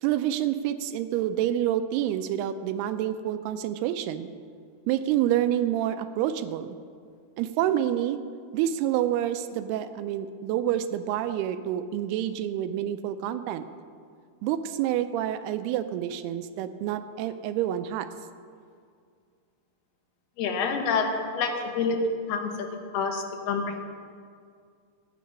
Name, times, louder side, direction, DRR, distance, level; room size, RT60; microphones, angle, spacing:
voice 1, 0.0-4.3 4.9-6.8 7.4-8.2 8.5-13.7 14.4-18.1, right 11 dB, 85° right, 11 dB, 2.5 m, -28 dB
voice 2, 20.4-22.0 22.3-22.5 22.9-23.8, left 5 dB, 75° left, 4 dB, 2.9 m, -27 dB
13.5 x 9.3 x 5.2 m, 2.2 s
omnidirectional pair, 4.7 m